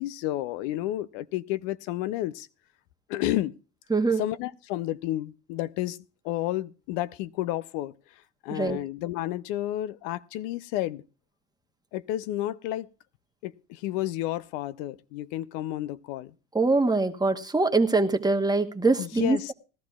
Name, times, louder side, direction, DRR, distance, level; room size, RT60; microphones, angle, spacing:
voice 1, 0.0-2.5 3.1-3.5 4.1-6.0 6.2-11.0 11.9-12.9 13.4-16.3 19.0-19.5, left 14 dB, 75° left, 15 dB, 0.6 m, -31 dB
voice 2, 3.9-4.2 8.5-8.8 16.5-19.5, right 3 dB, 10° right, 5 dB, 1.1 m, -23 dB
20.0 x 12.5 x 2.4 m, 0.33 s
supercardioid pair, 95°, 40 cm